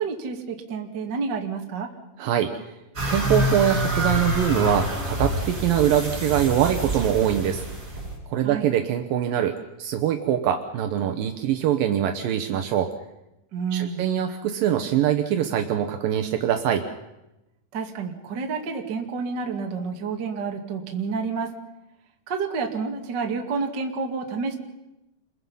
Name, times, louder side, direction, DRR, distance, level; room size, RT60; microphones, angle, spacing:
voice 1, 0.0-1.9 8.4-8.7 13.5-14.0 17.7-21.5 22.3-24.6, right 5 dB, 40° right, 2 dB, 1.5 m, -29 dB
voice 2, 2.2-2.8 3.1-7.6 8.3-12.9 13.7-16.9, right 10 dB, 75° right, 5 dB, 2.1 m, -23 dB
sound 1, 2.9-8.1, equal, 15° right, 7.6 m, -27 dB
29.0 x 22.5 x 5.6 m, 0.94 s
omnidirectional pair, 5.6 m